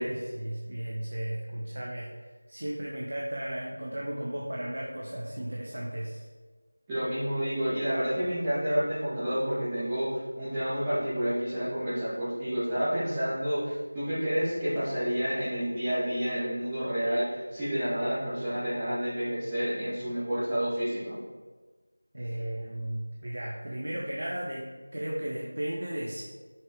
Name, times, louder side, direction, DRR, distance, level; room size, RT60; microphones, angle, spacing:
voice 1, 0.0-2.1 2.5-6.3 22.1-26.2, right 1 dB, 60° right, -2 dB, 1.2 m, -35 dB
voice 2, 6.9-21.2, equal, 10° right, -15 dB, 1.3 m, -29 dB
9.3 x 6.1 x 3.6 m, 1.4 s
figure-of-eight pair, 175°, 0 cm